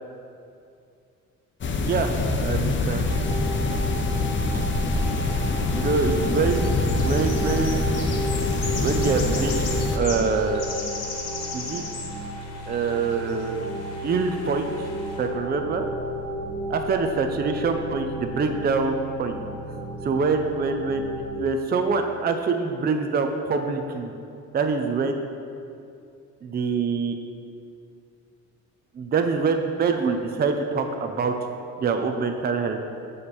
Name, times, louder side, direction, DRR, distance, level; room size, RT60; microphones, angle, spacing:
sound 1, 1.6-10.0, left 3 dB, 40° left, 0.7 m, -25 dB
voice 1, 1.8-3.1 4.5-4.7 5.7-6.7 7.0-7.8 8.8-9.6 9.9-10.6 11.5-11.9 12.7-13.7 14.0-14.9 15.2-15.9 16.7-19.3 20.0-21.1 21.3-24.1 24.5-25.2 26.4-27.2 28.9-31.3 31.8-32.8, right 4 dB, 30° right, 5 dB, 0.5 m, -25 dB
sound 2, 3.1-21.4, equal, 75° right, 1.4 m, -33 dB
sound 3, 4.7-15.3, left 4 dB, 60° left, 1.3 m, -38 dB
6.9 x 4.9 x 4.3 m, 2.5 s
cardioid pair, 90°, 30 cm